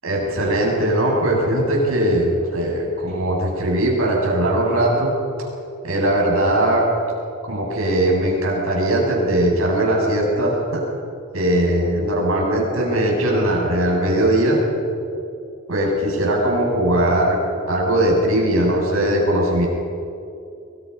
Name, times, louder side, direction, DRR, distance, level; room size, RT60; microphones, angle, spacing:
voice 1, 0.0-5.1 5.8-6.9 7.5-10.8 11.3-14.6 15.7-19.7, right 1 dB, 70° right, -2 dB, 7.7 m, -19 dB
24.5 x 23.5 x 5.6 m, 2.6 s
head